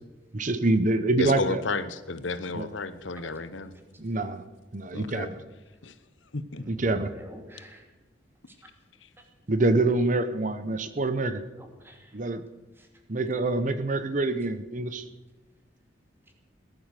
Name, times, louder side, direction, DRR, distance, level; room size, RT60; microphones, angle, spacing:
voice 1, 0.3-1.6 2.5-2.7 4.0-4.4 4.7-5.4 6.7-7.1 9.5-11.4 12.1-12.4 13.1-15.1, right 2 dB, 40° right, 11 dB, 0.8 m, -26 dB
voice 2, 1.2-3.7 4.9-5.3 5.8-5.9 6.3-6.6, left 3 dB, 90° left, 12 dB, 1.0 m, -32 dB
voice 3, 6.5-7.9 8.5-8.6 11.6-12.2 12.8-12.9, equal, 10° right, 3 dB, 2.5 m, -49 dB
18.5 x 11.0 x 6.6 m, 1.2 s
head